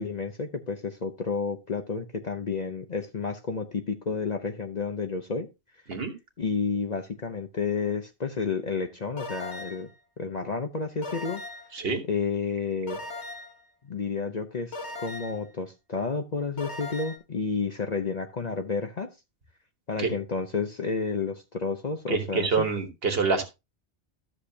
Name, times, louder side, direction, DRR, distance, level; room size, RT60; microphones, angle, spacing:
voice 1, 0.0-5.5 6.4-9.9 10.2-11.4 12.0-13.0 13.8-19.1 19.9-22.7, left 5 dB, 45° left, 0.7 m, -31 dB
sound 1, 9.2-9.9 11.0-11.8 12.9-13.6 14.7-15.5 16.6-17.2, left 2 dB, 70° left, 1.5 m, -38 dB
voice 2, 22.1-23.4, right 4 dB, 55° right, 1.6 m, -26 dB
12.5 x 6.6 x 2.7 m
omnidirectional pair, 1.2 m